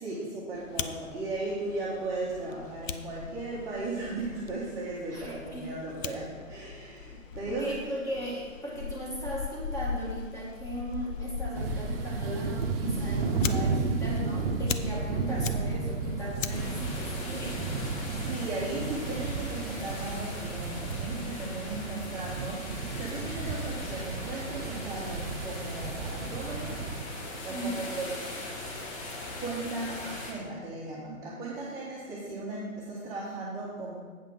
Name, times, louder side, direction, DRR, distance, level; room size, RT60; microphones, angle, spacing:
voice 1, 0.0-7.8 18.1-26.8 27.4-28.1 29.4-33.9, right 2 dB, 10° right, -9 dB, 1.2 m, -36 dB
Fire, 0.5-18.0, left 6 dB, 70° left, 0.7 m, -40 dB
voice 2, 5.1-5.7 7.5-17.7 27.5-27.9, equal, 5° left, -4 dB, 1.5 m, -37 dB
sound 1, 11.5-27.0, right 4 dB, 45° right, 1.0 m, -33 dB
sound 2, 16.5-30.3, left 2 dB, 25° left, 1.2 m, -40 dB
8.3 x 5.6 x 6.0 m, 1.5 s
hypercardioid pair, 145°, 41 cm